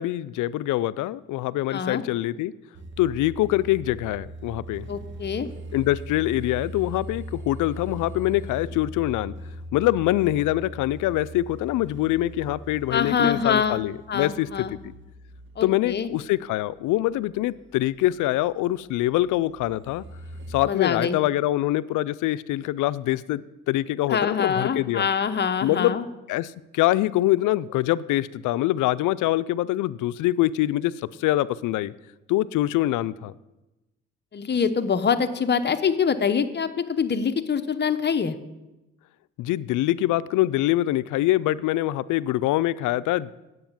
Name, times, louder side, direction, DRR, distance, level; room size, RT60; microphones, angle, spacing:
voice 1, 0.0-2.5 3.0-4.9 5.7-9.3 9.7-14.7 15.6-20.0 20.5-25.1 25.6-26.0 26.3-30.9 31.2-31.9 32.3-33.3 39.4-43.3, left 15 dB, 85° left, 17 dB, 0.5 m, -24 dB
voice 2, 1.7-2.0 4.9-5.5 12.9-13.8 14.1-14.7 15.6-16.1 20.6-21.2 24.1-26.0 34.3-38.4, left 6 dB, 35° left, 9 dB, 0.9 m, -24 dB
sound 1, 2.7-20.7, right 1 dB, 40° right, 1.6 m, -41 dB
9.3 x 8.1 x 7.3 m, 1.0 s
cardioid pair, 90°, 30 cm